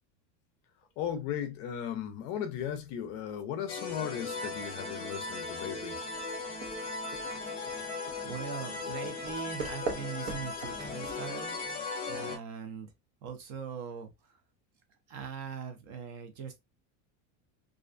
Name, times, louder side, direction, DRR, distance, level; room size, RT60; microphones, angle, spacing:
voice 1, 1.0-6.0, left 9 dB, 45° left, 0.5 m, -36 dB
sound 1, 3.7-12.4, left 3 dB, 15° left, 0.8 m, -38 dB
sound 2, 6.1-11.7, right 4 dB, 85° right, 0.9 m, -42 dB
voice 2, 8.2-11.6 12.1-12.9 13.2-14.1 15.1-16.6, right 6 dB, 45° right, 0.6 m, -41 dB
2.4 x 2.2 x 2.4 m
supercardioid pair, 155°, 36 cm